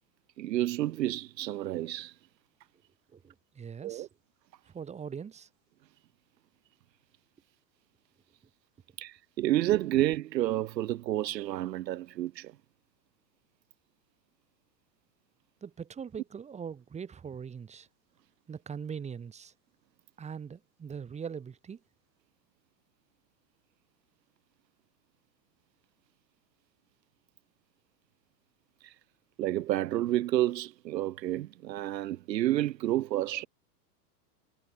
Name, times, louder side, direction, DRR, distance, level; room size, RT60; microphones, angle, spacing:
voice 1, 0.4-2.1 3.8-4.1 9.0-12.5 28.8-28.9 29.4-33.5, right 14 dB, 80° right, 1.3 m, -30 dB
voice 2, 3.1-4.1 4.6-5.5 15.6-17.9 18.5-19.5 20.2-21.8, right 7 dB, 15° right, 5.1 m, -41 dB
supercardioid pair, 160°, 49 cm